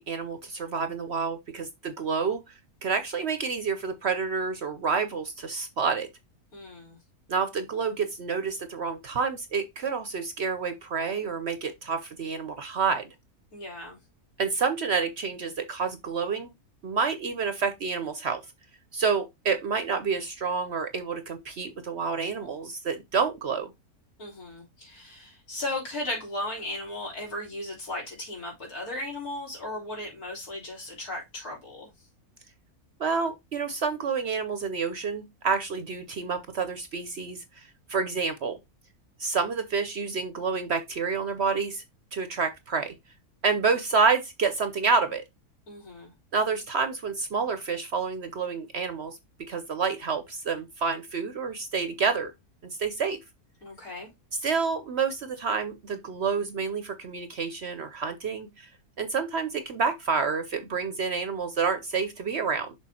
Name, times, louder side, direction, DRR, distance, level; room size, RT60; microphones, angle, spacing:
voice 1, 0.0-2.4 2.8-6.1 7.3-13.1 14.4-16.5 16.8-18.4 18.9-23.7 33.0-37.4 37.9-38.6 39.2-41.8 42.1-42.9 43.4-45.2 46.3-49.2 49.5-52.3 52.8-53.2 54.4-58.7 59.0-62.7, right 5 dB, 55° right, 0.8 m, -28 dB
voice 2, 6.5-7.0 13.5-14.0 24.2-31.9 45.7-46.1 53.6-54.1, left 1 dB, 75° left, 4.1 m, -36 dB
6.5 x 3.8 x 4.2 m
omnidirectional pair, 1.6 m